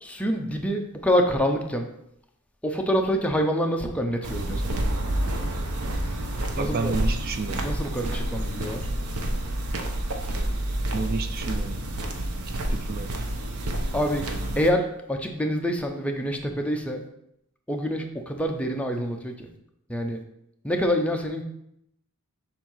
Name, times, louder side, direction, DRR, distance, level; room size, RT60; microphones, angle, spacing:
voice 1, 0.0-1.9 2.6-5.6 6.6-6.9 7.5-8.8 13.9-14.3 14.6-17.0 17.7-19.5 19.9-20.2 20.6-21.4, equal, 5° left, 3 dB, 0.6 m, -26 dB
sound 1, 4.2-14.7, right 1 dB, 80° right, 0.8 m, -29 dB
voice 2, 6.6-7.7 10.9-11.8 12.7-13.1, right 4 dB, 40° right, 8 dB, 0.4 m, -30 dB
7.3 x 2.7 x 5.6 m, 0.78 s
head